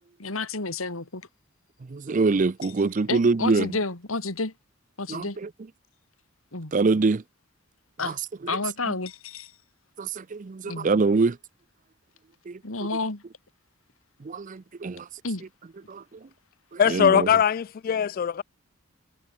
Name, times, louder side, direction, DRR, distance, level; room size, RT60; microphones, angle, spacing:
voice 1, 0.2-1.3 2.6-2.7 3.1-4.5 5.0-5.4 6.5-6.7 8.0-8.2 8.5-9.5 10.6-10.9 12.6-13.2 15.2-15.4, left 3 dB, 90° left, 2.9 m, -30 dB
voice 2, 1.9-3.7 5.1-5.2 6.7-7.2 10.0-11.3 14.3-15.0 16.9-17.3, right 3 dB, 40° right, 0.5 m, -23 dB
voice 3, 16.8-18.4, left 8 dB, 45° left, 0.3 m, -21 dB
head